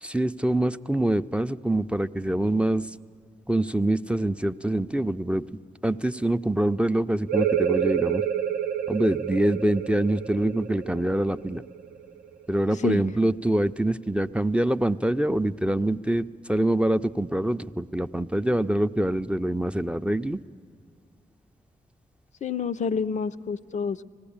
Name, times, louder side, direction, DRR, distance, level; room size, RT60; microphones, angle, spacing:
voice 1, 0.0-2.9 3.5-5.4 5.8-8.2 8.9-11.6 12.5-20.4, right 1 dB, 5° right, 9 dB, 0.4 m, -25 dB
sound 1, 7.3-12.7, right 9 dB, 80° right, 0.5 m, -28 dB
voice 2, 12.7-13.0 22.4-24.0, left 6 dB, 55° left, 11 dB, 0.5 m, -28 dB
19.5 x 16.0 x 8.7 m, 2.1 s
supercardioid pair, 45°, 15 cm